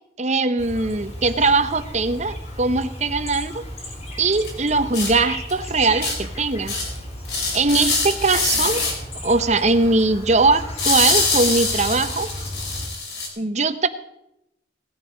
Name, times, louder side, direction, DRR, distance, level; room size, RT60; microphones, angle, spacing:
voice 1, 0.2-3.6 4.2-6.8 7.5-8.8 9.2-12.3 13.4-13.9, right 3 dB, 40° right, 11 dB, 0.9 m, -20 dB
Chirp tweet, 0.6-12.9, equal, 40° left, 3.6 m, -35 dB
sound 1, 4.4-4.5 4.9-5.1 5.5-5.6 6.0-6.2 6.7-7.0 7.2-8.9 10.8-13.3, left 3 dB, 65° left, 4.3 m, -23 dB
18.5 x 11.5 x 5.1 m, 0.86 s
head